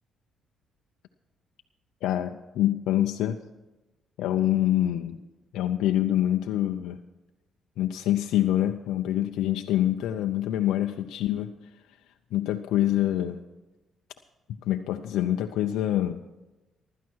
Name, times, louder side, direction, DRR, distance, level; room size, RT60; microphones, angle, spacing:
voice 1, 2.0-3.4 4.2-5.2 5.5-7.0 7.8-11.5 12.3-13.4 14.6-16.2, left 12 dB, 90° left, 5 dB, 0.6 m, -25 dB
15.5 x 12.0 x 4.6 m, 1.1 s
cardioid pair, 90°, 0 cm